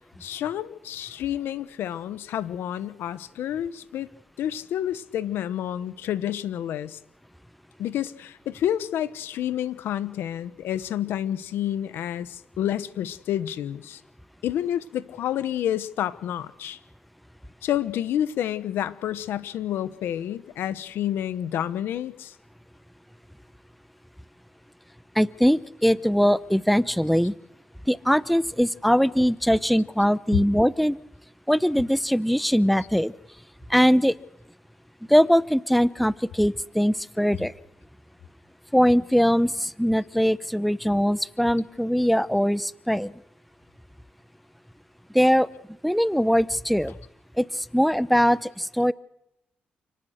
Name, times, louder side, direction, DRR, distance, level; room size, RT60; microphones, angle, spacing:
voice 1, 0.2-4.1 4.4-7.0 7.8-14.0 14.4-16.8 17.6-22.3 30.3-30.4, left 11 dB, 90° left, 14 dB, 1.2 m, -29 dB
voice 2, 25.1-27.3 27.9-31.0 31.5-33.1 33.7-34.2 35.1-37.5 38.7-43.1 45.1-45.5 45.8-47.0 47.4-48.9, equal, ahead, 17 dB, 0.8 m, -21 dB
29.0 x 18.0 x 6.6 m, 0.84 s
cardioid pair, 70°, 4 cm